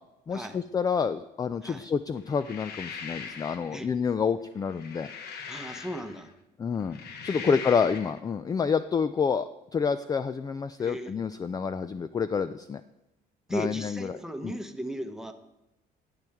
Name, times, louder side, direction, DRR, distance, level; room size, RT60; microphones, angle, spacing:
voice 1, 0.3-5.1 6.6-12.8 13.5-14.2 14.4-14.5, left 6 dB, 20° left, 13 dB, 0.3 m, -28 dB
sound 1, 2.3-3.8 4.6-6.3 6.8-8.2, left 6 dB, 70° left, 1.1 m, -41 dB
voice 2, 5.5-6.3 7.3-7.5 10.8-11.1 13.5-15.3, right 1 dB, 5° right, 6 dB, 0.9 m, -36 dB
12.0 x 9.3 x 3.6 m, 0.91 s
cardioid pair, 110°, 17 cm